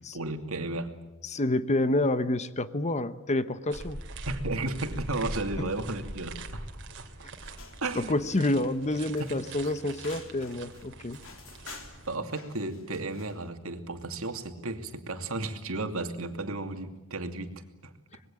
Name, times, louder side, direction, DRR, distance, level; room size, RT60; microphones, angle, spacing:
voice 1, 0.1-0.9 4.3-6.7 7.0-7.1 7.8-8.1 12.1-17.5 17.8-17.9, right 2 dB, 75° right, 7 dB, 2.6 m, -33 dB
voice 2, 1.2-4.0 5.6-5.7 8.0-11.2, left 2 dB, 35° left, 13 dB, 1.0 m, -28 dB
sound 1, 3.7-12.2, right 2 dB, 60° right, 2.8 m, -42 dB
sound 2, 7.3-13.5, left 4 dB, 70° left, 3.7 m, -51 dB
25.5 x 21.0 x 8.9 m, 1.0 s
head